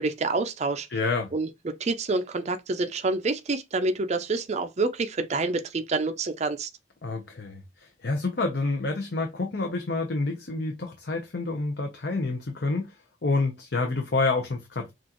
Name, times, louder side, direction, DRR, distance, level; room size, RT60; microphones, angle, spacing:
voice 1, 0.0-0.9 1.3-6.7, right 3 dB, 40° right, 0.5 m, -27 dB
voice 2, 0.9-1.3 7.0-13.0 13.2-14.9, left 3 dB, 65° left, 0.8 m, -28 dB
6.1 x 2.5 x 2.9 m
head